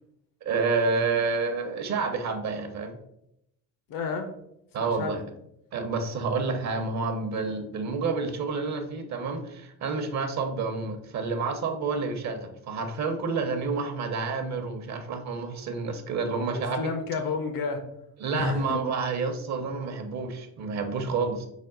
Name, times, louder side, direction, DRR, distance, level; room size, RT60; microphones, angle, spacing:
voice 1, 0.4-3.0 4.7-5.2 5.7-16.9 18.2-21.5, right 4 dB, 45° right, 6 dB, 0.8 m, -29 dB
voice 2, 3.9-4.3 4.8-5.2 16.5-17.8 18.3-18.8, left 4 dB, 65° left, 6 dB, 0.9 m, -30 dB
5.2 x 2.1 x 3.8 m, 0.78 s
supercardioid pair, 75°, 37 cm